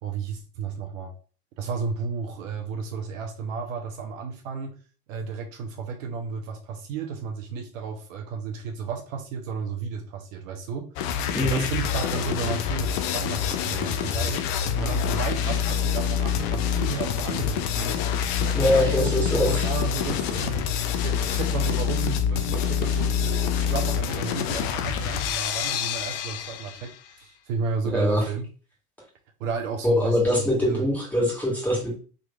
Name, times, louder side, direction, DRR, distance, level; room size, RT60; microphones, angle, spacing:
voice 1, 0.0-1.1 1.6-4.8 5.1-10.9 11.4-14.4 14.8-18.0 18.4-19.1 19.4-20.7 21.0-28.5 29.4-30.8, right 5 dB, 55° right, 3 dB, 0.8 m, -32 dB
sound 1, 11.0-26.9, left 8 dB, 35° left, 0.4 m, -26 dB
voice 2, 11.3-11.7 18.5-19.7 27.8-28.3 29.8-31.9, left 1 dB, 5° left, -4 dB, 1.6 m, -23 dB
3.8 x 3.0 x 2.4 m, 0.38 s
hypercardioid pair, 100°, 46 cm